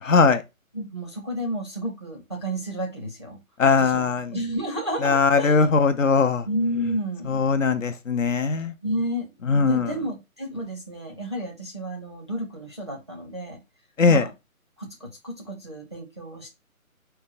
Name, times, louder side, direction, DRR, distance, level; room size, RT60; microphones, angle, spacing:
voice 1, 0.0-0.4 3.6-4.4 5.0-6.5 7.3-8.7 9.5-9.9 14.0-14.2, left 4 dB, 65° left, 0.8 m, -20 dB
voice 2, 0.7-3.4 3.8-4.0 4.3-5.7 6.5-7.3 8.8-13.6 14.1-14.3 14.8-16.5, equal, 20° right, 0.6 m, -31 dB
4.5 x 2.3 x 4.0 m
hypercardioid pair, 165°, 42 cm